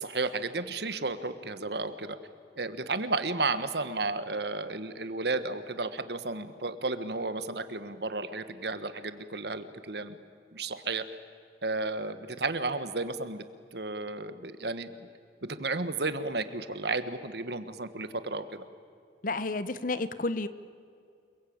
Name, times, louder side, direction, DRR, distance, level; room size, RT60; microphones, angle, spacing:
voice 1, 0.0-2.2 2.6-10.2 10.5-11.0 11.6-13.4 13.7-14.9 15.5-18.6, right 3 dB, 65° right, 11 dB, 1.5 m, -33 dB
voice 2, 19.2-20.5, left 2 dB, 45° left, 14 dB, 1.0 m, -31 dB
29.0 x 22.0 x 8.8 m, 2.4 s
head